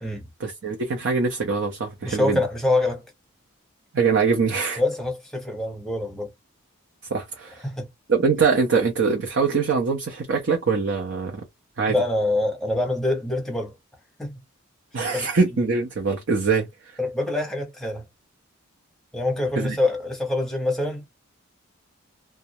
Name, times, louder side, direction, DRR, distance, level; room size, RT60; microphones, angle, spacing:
voice 1, 0.4-2.4 3.9-4.8 7.1-7.6 8.1-11.4 11.8-11.9 14.9-16.7 19.6-19.8, right 4 dB, 60° right, 0.6 m, -23 dB
voice 2, 2.0-3.0 4.8-6.3 7.6-7.9 11.9-13.7 14.2-14.4 15.1-15.3 17.0-18.0 19.1-21.1, left 2 dB, ahead, 0.8 m, -25 dB
2.3 x 2.0 x 2.7 m
head